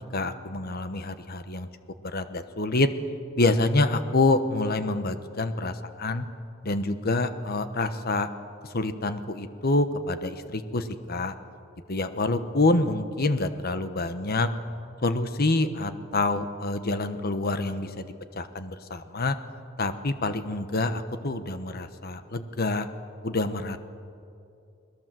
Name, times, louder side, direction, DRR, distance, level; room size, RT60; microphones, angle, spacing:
voice 1, 0.1-1.7 2.0-2.9 3.4-6.2 6.6-8.3 8.7-11.3 11.9-14.5 15.0-18.1 18.3-19.4 19.8-22.9 23.2-23.8, left 2 dB, 50° left, 10 dB, 1.2 m, -27 dB
29.5 x 21.0 x 7.7 m, 2.5 s
head